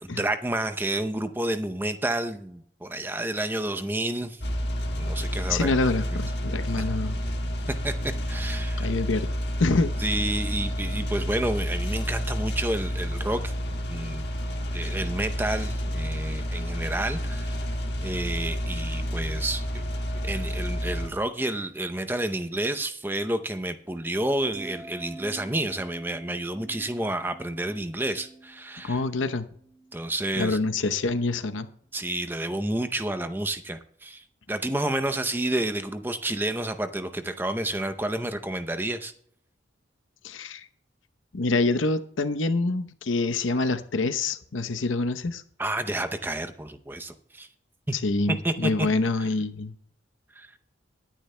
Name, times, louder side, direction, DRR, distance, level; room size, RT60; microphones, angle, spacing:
voice 1, 0.0-4.4 5.0-5.8 6.1-6.2 6.8-6.9 7.8-8.9 10.0-13.5 13.9-14.2 14.7-17.6 18.0-19.9 20.2-29.0 29.9-30.6 31.9-39.1 45.6-47.5 47.9-48.0 48.3-48.9 50.4-50.5, right 1 dB, 10° right, 9 dB, 0.6 m, -30 dB
sound 1, 4.4-21.1, equal, 60° left, 1.7 m, -30 dB
voice 2, 5.5-7.2 8.8-9.3 9.6-9.9 28.8-29.5 30.4-31.7 40.2-40.7 41.3-45.4 47.9-49.7, left 3 dB, 90° left, 9 dB, 0.8 m, -26 dB
sound 2, 24.5-30.8 31.1-31.5, right 2 dB, 35° right, 3.3 m, -47 dB
21.0 x 10.0 x 2.2 m, 0.64 s
head